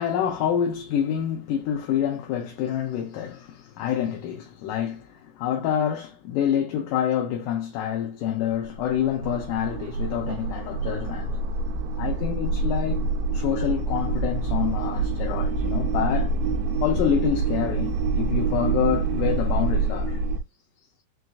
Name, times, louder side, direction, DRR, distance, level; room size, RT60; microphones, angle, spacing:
voice 1, 0.0-11.5 12.0-16.4 16.8-20.2, left 9 dB, 80° left, 2.0 m, -27 dB
sound 1, 8.5-20.4, right 3 dB, 85° right, 2.3 m, -26 dB
5.9 x 2.4 x 2.3 m
omnidirectional pair, 4.1 m